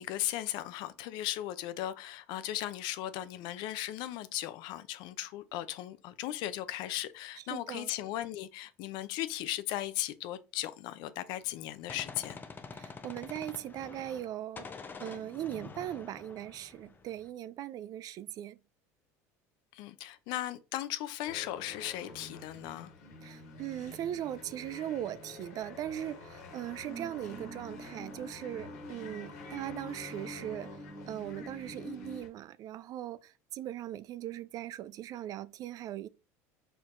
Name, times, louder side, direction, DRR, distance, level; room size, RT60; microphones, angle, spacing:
voice 1, 0.0-12.4 19.7-22.9, left 14 dB, 65° left, 0.5 m, -37 dB
voice 2, 7.5-7.9 12.7-14.7 15.0-18.6 23.2-30.8 31.1-36.1, right 12 dB, 50° right, 0.4 m, -39 dB
Gunshot gunfire, 11.4-14.3 14.6-17.3, left 5 dB, 25° left, 0.7 m, -47 dB
sound 1, 21.2-32.3, left 3 dB, 85° left, 1.4 m, -50 dB
sound 2, 26.8-32.2, equal, 5° right, 1.3 m, -46 dB
4.5 x 4.3 x 2.5 m
supercardioid pair, 95°, 8 cm